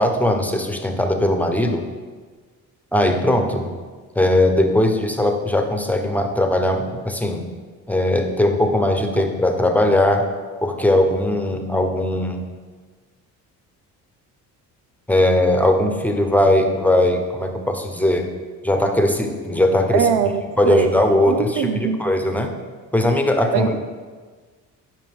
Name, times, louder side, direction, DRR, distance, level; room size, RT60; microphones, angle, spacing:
voice 1, 0.0-1.9 2.9-3.7 4.1-7.5 7.9-10.2 10.6-12.4 15.1-18.3 18.6-20.1 20.6-22.5 22.9-23.7, left 1 dB, 5° left, 4 dB, 1.1 m, -19 dB
voice 2, 19.9-21.0 21.3-22.0 23.5-23.8, right 8 dB, 85° right, 8 dB, 0.6 m, -21 dB
11.0 x 5.2 x 3.6 m, 1.5 s
supercardioid pair, 60°, 38 cm